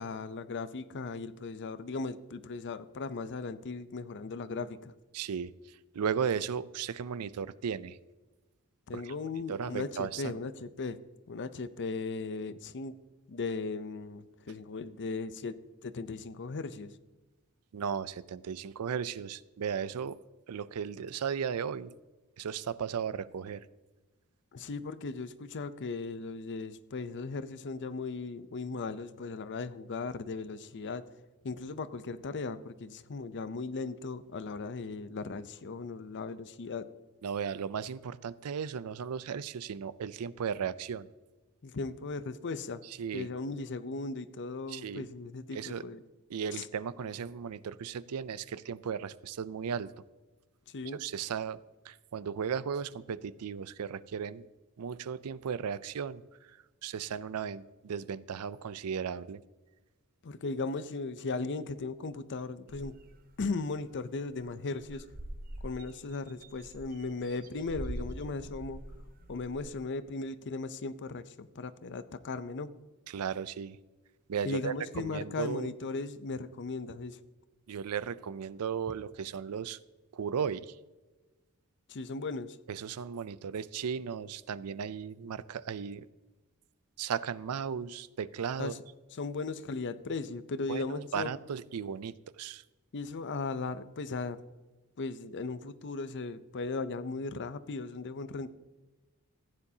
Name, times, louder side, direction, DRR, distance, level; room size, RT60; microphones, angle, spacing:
voice 1, 0.0-4.9 8.9-11.0 11.3-12.9 13.3-15.6 15.8-16.9 24.5-31.0 31.4-36.9 41.6-42.8 43.1-46.0 46.5-46.7 50.7-51.0 60.2-62.9 63.4-65.1 65.6-68.8 69.3-72.7 74.4-77.2 79.0-79.1 81.9-82.6 88.6-88.8 89.1-91.3 92.9-94.4 95.0-98.5, left 3 dB, 55° left, 14 dB, 0.6 m, -37 dB
voice 2, 5.1-8.0 8.9-9.1 9.5-10.3 17.7-20.2 20.5-21.9 22.4-23.7 37.2-41.1 42.8-43.3 44.7-45.1 45.5-45.8 46.3-49.9 50.9-54.5 54.8-56.5 56.8-59.4 73.1-73.8 74.3-75.7 77.7-79.8 80.1-80.8 82.7-86.1 87.0-88.7 90.7-92.6, right 7 dB, 85° right, 18 dB, 0.4 m, -36 dB
sound 1, 62.7-63.4 63.9-64.0 64.2-64.5 64.8-69.8, right 1 dB, 40° right, 1.0 m, -44 dB
15.0 x 9.7 x 2.8 m, 1.2 s
head